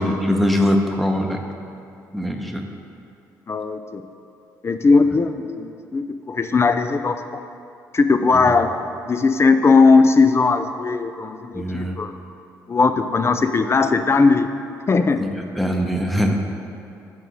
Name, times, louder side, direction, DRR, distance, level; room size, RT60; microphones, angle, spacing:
voice 1, 0.0-1.4 2.1-2.6 8.3-8.4 11.5-12.0 15.2-15.3 15.6-16.4, equal, ahead, 3 dB, 0.9 m, -21 dB
voice 2, 3.5-4.0 4.6-7.1 7.9-8.7 9.0-12.1 12.7-14.5 14.9-15.2, left 4 dB, 30° left, 9 dB, 0.5 m, -18 dB
9.0 x 3.9 x 6.2 m, 2.5 s
figure-of-eight pair, 45°, 9 cm